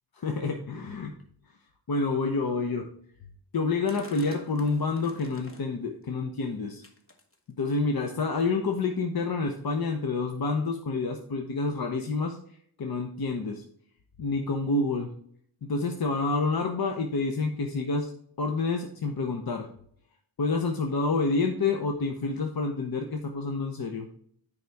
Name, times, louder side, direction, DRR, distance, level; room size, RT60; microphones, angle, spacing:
voice 1, 0.2-1.1 1.9-2.9 3.5-6.8 7.6-12.4 12.8-13.6 14.2-15.1 15.6-18.1 18.4-19.7 20.4-24.1, left 3 dB, 55° left, 3 dB, 0.9 m, -28 dB
sound 1, 3.9-5.8 6.2-6.5 6.8-7.7 8.2-8.6 9.3-9.4 9.6-9.7 10.3-10.4 11.1-11.2, left 2 dB, 30° left, 1.1 m, -49 dB
9.5 x 5.2 x 3.4 m, 0.63 s
wide cardioid pair, 145°, 42 cm